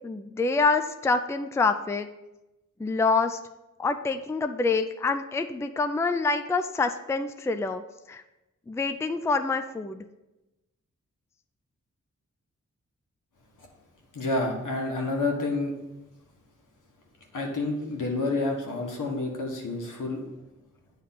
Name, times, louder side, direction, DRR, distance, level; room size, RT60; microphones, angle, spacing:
voice 1, 0.0-2.1 2.8-3.4 3.8-7.8 8.1-8.2 8.7-10.0, left 4 dB, 10° left, 8 dB, 0.4 m, -26 dB
voice 2, 14.1-15.7 17.3-20.2, left 2 dB, 80° left, 0 dB, 1.5 m, -29 dB
8.6 x 3.2 x 5.7 m, 0.99 s
wide cardioid pair, 75°, 31 cm